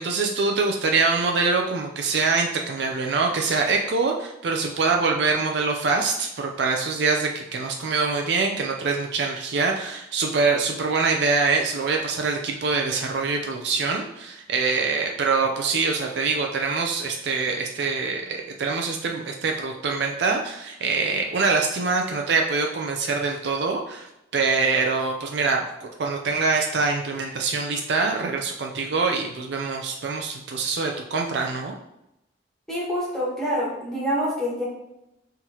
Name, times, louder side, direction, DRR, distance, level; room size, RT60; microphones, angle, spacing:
voice 1, 0.0-24.1 24.3-31.8, right 4 dB, 65° right, 2 dB, 0.4 m, -24 dB
voice 2, 32.7-34.6, equal, ahead, -8 dB, 1.4 m, -26 dB
5.7 x 3.0 x 2.8 m, 0.88 s
head